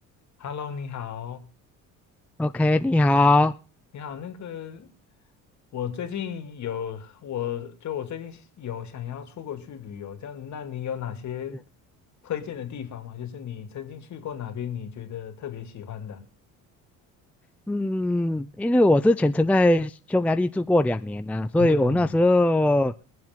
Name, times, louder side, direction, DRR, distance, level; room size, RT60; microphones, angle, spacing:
voice 1, 0.4-1.5 3.9-4.9 5.7-11.6 12.2-16.2 21.6-22.2, left 9 dB, 55° left, 2.6 m, -34 dB
voice 2, 2.4-3.5 17.7-22.9, left 1 dB, 5° left, 0.5 m, -21 dB
22.5 x 7.7 x 3.7 m
cardioid pair, 95°, 34 cm